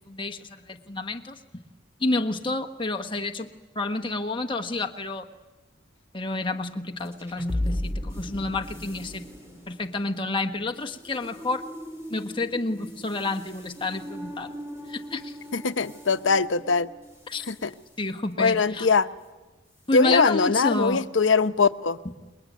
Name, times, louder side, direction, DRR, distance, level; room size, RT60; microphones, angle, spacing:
voice 1, 0.1-1.4 2.0-3.5 3.7-5.3 6.1-9.2 9.7-11.6 12.1-14.5 14.9-15.3 17.3-17.4 18.0-18.9 19.9-21.0, left 2 dB, 25° left, 5 dB, 1.3 m, -29 dB
sound 1, 7.0-17.5, left 1 dB, 15° right, 3.9 m, -37 dB
voice 2, 15.5-16.9 17.5-17.7 18.4-19.1 19.9-22.0, left 4 dB, 75° left, 11 dB, 0.9 m, -22 dB
27.0 x 22.0 x 9.3 m, 1.2 s
head